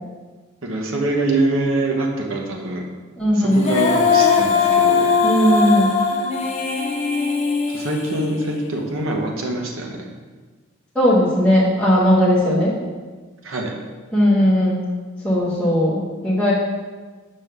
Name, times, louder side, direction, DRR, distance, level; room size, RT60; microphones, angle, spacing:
voice 1, 0.6-2.8 3.3-5.1 7.7-10.1 13.4-13.7, right 2 dB, 75° right, 1 dB, 1.0 m, -24 dB
voice 2, 3.2-3.6 5.2-6.0 10.9-12.8 14.1-14.8 15.2-16.5, equal, 5° left, -9 dB, 0.9 m, -17 dB
Female singing, 3.5-8.7, left 5 dB, 30° left, 0.6 m, -20 dB
5.5 x 3.5 x 5.4 m, 1.4 s
head